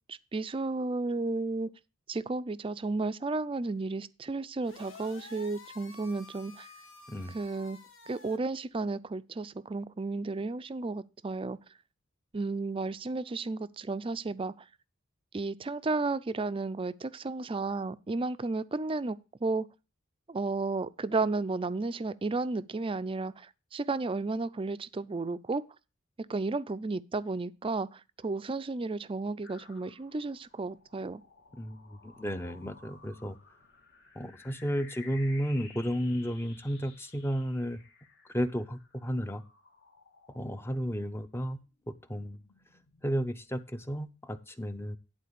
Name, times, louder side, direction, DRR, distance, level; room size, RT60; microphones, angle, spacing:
voice 1, 0.1-1.7 2.1-6.7 7.3-7.8 8.1-11.6 12.3-14.5 15.3-19.7 20.3-25.6 26.3-31.2, right 3 dB, 25° right, 0.4 m, -33 dB
sound 1, 4.6-8.4, left 3 dB, 80° left, 2.0 m, -51 dB
sound 2, 29.4-41.3 41.7-43.3, left 5 dB, 55° left, 1.7 m, -56 dB
voice 2, 31.5-33.4 34.1-37.8 38.3-39.4 40.3-41.6 41.9-42.4 43.0-45.0, equal, 10° left, 0.6 m, -33 dB
11.0 x 3.9 x 6.7 m
head